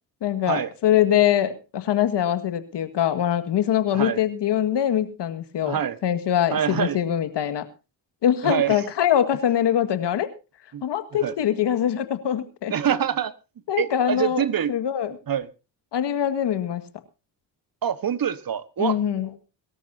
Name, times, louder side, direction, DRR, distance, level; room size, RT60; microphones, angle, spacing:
voice 1, 0.2-7.7 8.2-10.3 10.8-12.7 13.7-15.2 15.9-16.8 18.8-19.3, left 10 dB, 65° left, 1.9 m, -23 dB
voice 2, 5.6-6.0 6.5-7.0 8.4-8.9 10.7-10.9 11.1-11.3 12.7-13.3 13.8-14.7 15.3-15.5 17.8-19.0, right 9 dB, 50° right, 1.4 m, -25 dB
24.0 x 13.0 x 2.7 m
hypercardioid pair, 50°, 46 cm